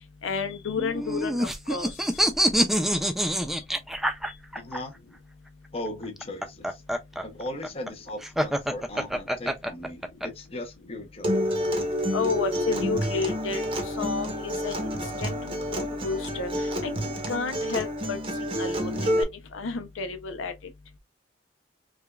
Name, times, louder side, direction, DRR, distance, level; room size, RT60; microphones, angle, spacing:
voice 1, 0.2-2.1 12.1-13.6 13.9-16.9 17.3-18.2 18.6-19.2 19.5-20.5, left 5 dB, 85° left, 0.6 m, -31 dB
sound 1, 0.8-4.8 6.0-10.3, equal, ahead, 0.3 m, -26 dB
voice 2, 4.6-4.9 5.7-6.8 7.2-11.4, left 1 dB, 30° left, 0.8 m, -38 dB
Acoustic guitar, 11.2-19.2, equal, 25° right, 0.8 m, -29 dB
4.9 x 2.3 x 2.3 m
head